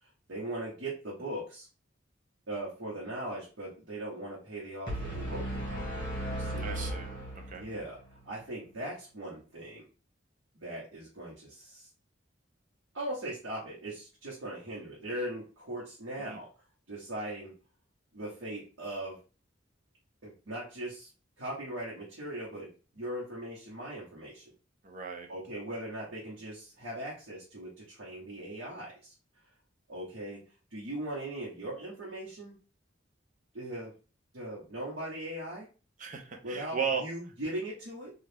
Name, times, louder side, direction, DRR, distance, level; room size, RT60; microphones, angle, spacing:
voice 1, 0.3-1.7 2.5-5.9 6.3-6.7 7.6-8.0 8.2-9.9 10.6-11.9 12.9-16.5 16.9-17.5 18.1-19.2 20.2-21.1 21.4-24.5 25.3-29.1 29.9-30.4 30.7-32.5 33.5-33.9 34.3-35.7 36.4-38.1, right 1 dB, 80° right, -6 dB, 1.0 m, -39 dB
sound 1, 4.9-7.9, right 1 dB, 25° left, 1.5 m, -36 dB
voice 2, 6.6-7.1 7.3-7.6 16.2-16.4 24.8-25.3 36.0-37.0, right 6 dB, 45° right, 3 dB, 0.6 m, -35 dB
2.7 x 2.4 x 3.3 m, 0.35 s
head